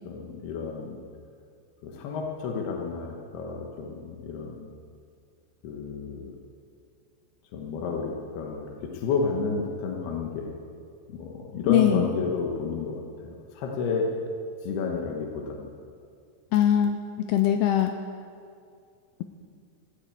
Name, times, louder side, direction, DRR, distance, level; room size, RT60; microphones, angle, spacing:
voice 1, 0.1-1.0 1.8-4.7 5.6-6.4 7.5-10.5 11.1-14.1 14.6-15.7, left 4 dB, 70° left, 0 dB, 3.0 m, -31 dB
voice 2, 11.7-12.1 16.5-16.9 17.2-17.9, left 10 dB, 85° left, 6 dB, 2.3 m, -21 dB
15.0 x 9.7 x 8.6 m, 2.4 s
omnidirectional pair, 5.1 m